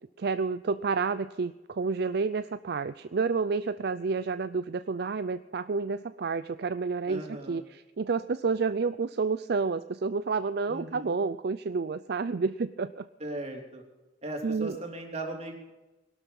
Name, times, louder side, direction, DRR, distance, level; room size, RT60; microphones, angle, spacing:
voice 1, 0.2-7.2 7.5-13.1 14.4-14.8, right 4 dB, 65° right, 12 dB, 0.5 m, -30 dB
voice 2, 7.1-7.6 10.7-11.2 13.2-13.8 14.2-15.7, right 1 dB, 40° right, 2 dB, 3.5 m, -38 dB
21.0 x 12.0 x 5.5 m, 1.1 s
head